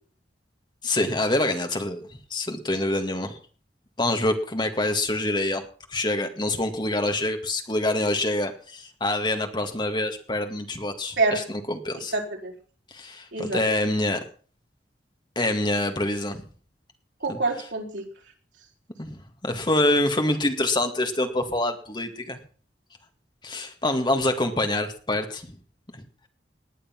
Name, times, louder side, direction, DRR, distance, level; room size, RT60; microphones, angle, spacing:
voice 1, 0.8-3.4 4.0-5.6 5.9-12.1 12.9-14.2 15.4-16.4 17.3-17.4 19.0-22.4 23.4-25.6, left 1 dB, 25° left, 5 dB, 2.0 m, -26 dB
voice 2, 12.1-12.5 13.3-13.6 17.2-18.1, right 3 dB, 85° right, 0 dB, 4.9 m, -26 dB
19.0 x 10.0 x 5.9 m, 0.41 s
head